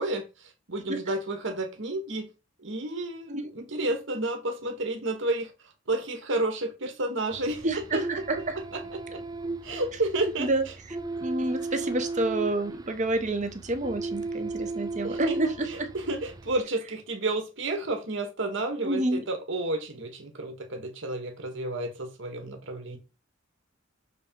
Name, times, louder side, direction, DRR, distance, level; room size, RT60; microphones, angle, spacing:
voice 1, 0.0-2.3 2.6-5.5 5.9-8.2 8.7-9.2 9.6-10.5 15.0-23.0, right 2 dB, 65° right, 4 dB, 1.6 m, -31 dB
sound 1, 7.3-16.6, right 3 dB, 20° right, 0.5 m, -36 dB
voice 2, 7.6-8.6 10.4-10.6 11.2-15.9 18.8-19.2, right 2 dB, 35° right, 7 dB, 1.1 m, -28 dB
6.6 x 3.8 x 4.6 m, 0.28 s
head